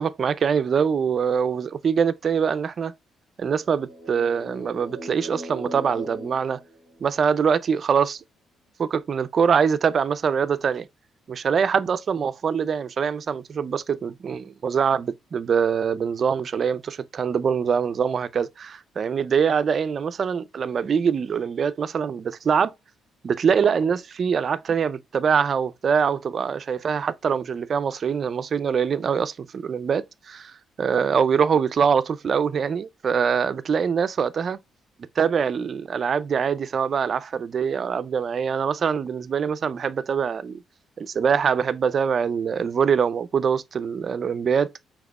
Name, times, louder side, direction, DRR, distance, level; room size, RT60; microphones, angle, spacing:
voice 1, 0.0-2.9 3.4-6.6 7.0-8.2 8.8-10.9 11.3-22.7 23.2-30.5 30.8-34.6 35.2-40.6 41.0-44.9, right 6 dB, 50° right, 0.4 m, -24 dB
sound 1, 3.6-7.4, right 1 dB, 65° left, 1.5 m, -39 dB
5.0 x 3.5 x 2.3 m
cardioid pair, 90°, 0 cm